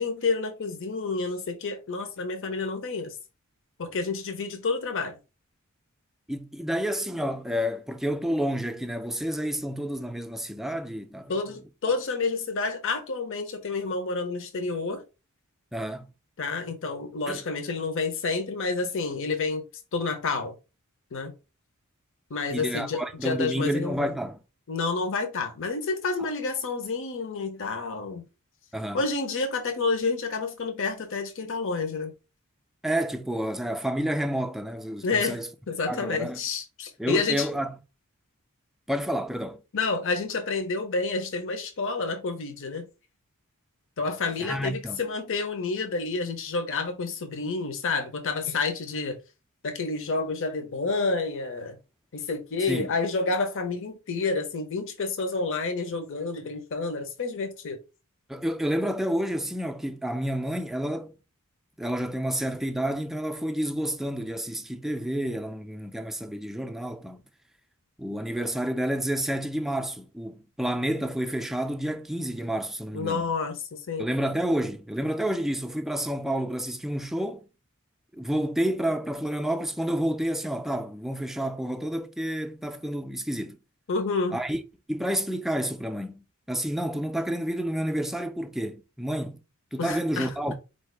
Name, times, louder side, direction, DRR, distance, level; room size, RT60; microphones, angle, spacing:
voice 1, 0.0-3.2 3.8-5.2 11.3-15.0 16.4-19.6 19.9-20.6 21.1-21.3 22.3-24.1 24.7-28.2 28.9-32.1 35.0-37.5 39.7-42.9 44.0-49.2 49.6-51.8 52.1-57.8 72.9-74.1 83.9-84.4 89.8-90.3, left 4 dB, 60° left, 0.8 m, -29 dB
voice 2, 6.3-11.4 15.7-16.1 17.3-17.4 22.5-24.4 28.7-29.0 32.8-35.5 35.9-36.4 37.0-37.7 38.9-39.6 44.4-45.0 52.7-52.9 58.3-61.1 61.8-67.2 68.0-73.3 74.0-77.4 78.1-83.6 84.3-84.6 84.9-89.4 89.7-90.5, equal, ahead, 0.4 m, -29 dB
4.3 x 2.7 x 3.3 m
head